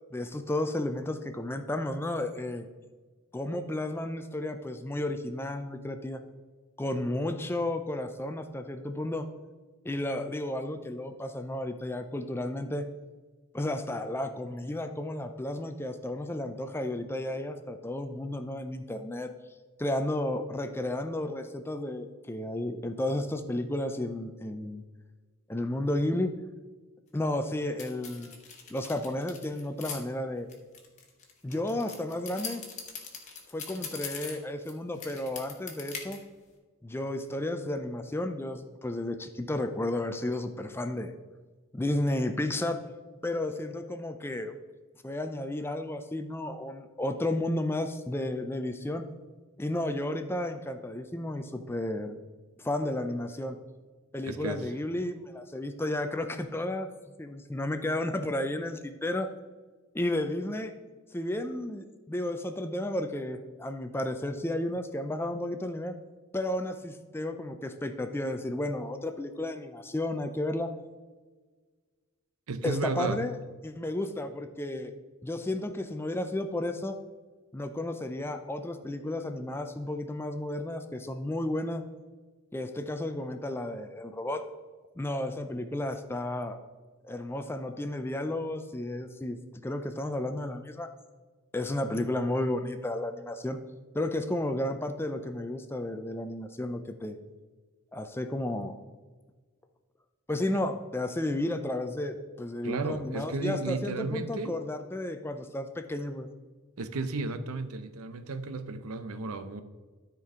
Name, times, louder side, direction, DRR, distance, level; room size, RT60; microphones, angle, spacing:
voice 1, 0.1-2.7 3.3-6.2 6.8-9.3 9.8-12.8 13.5-19.3 19.8-24.8 25.5-26.3 27.1-28.4 28.7-30.5 31.4-32.6 33.5-36.2 36.8-41.1 41.7-42.8 43.2-44.5 45.0-49.0 49.6-52.2 52.6-53.6 54.1-56.9 57.2-59.3 59.9-60.7 61.1-65.9 66.3-70.7 72.6-73.3 73.6-74.9 75.2-77.0 77.5-81.8 82.5-84.4 85.0-86.6 87.0-89.4 89.6-90.9 91.5-93.6 93.9-97.2 97.9-98.8 100.3-106.3, left 1 dB, 10° left, 7 dB, 0.4 m, -32 dB
sound 1, 27.8-30.0 30.5-34.7 35.0-36.2, left 6 dB, 35° left, 1.2 m, -41 dB
voice 2, 54.2-54.7 72.5-73.2 102.6-104.5 106.8-109.6, right 3 dB, 85° right, 10 dB, 0.7 m, -33 dB
13.0 x 4.5 x 3.7 m, 1.4 s
head